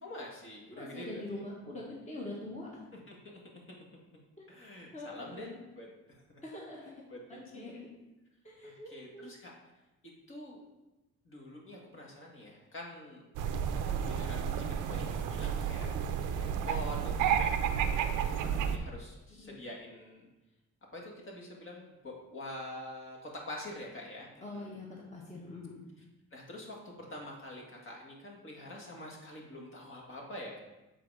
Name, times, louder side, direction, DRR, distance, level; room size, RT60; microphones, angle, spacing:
voice 1, 0.0-1.4 2.9-3.4 4.5-5.9 6.3-6.4 7.1-7.8 8.6-9.5 10.3-10.6 11.3-13.3 14.0-15.9 16.3-17.5 18.4-20.3 20.9-24.7 26.3-30.6, left 1 dB, 45° left, -1 dB, 1.9 m, -46 dB
voice 2, 0.7-2.8 4.9-5.6 6.4-6.8 7.3-7.9 8.4-9.3 19.4-19.6 24.4-24.9 25.1-25.8, left 2 dB, 25° left, -4 dB, 1.6 m, -43 dB
sound 1, 13.4-18.8, right 8 dB, 90° right, 0.6 m, -31 dB
8.0 x 3.9 x 4.8 m, 1.0 s
cardioid pair, 90°, 30 cm